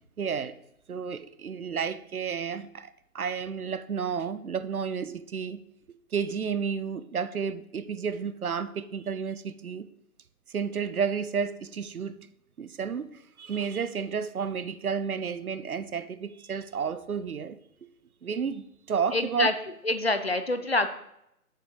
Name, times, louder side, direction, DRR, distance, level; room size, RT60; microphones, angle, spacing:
voice 1, 0.2-0.6 0.9-5.6 6.1-9.9 10.5-12.1 12.6-17.6 18.2-19.5, right 6 dB, 70° right, 14 dB, 0.8 m, -31 dB
voice 2, 19.1-19.5 19.8-20.9, left 2 dB, 45° left, 10 dB, 0.7 m, -26 dB
6.8 x 6.2 x 7.0 m, 0.79 s
hypercardioid pair, 175°, 45 cm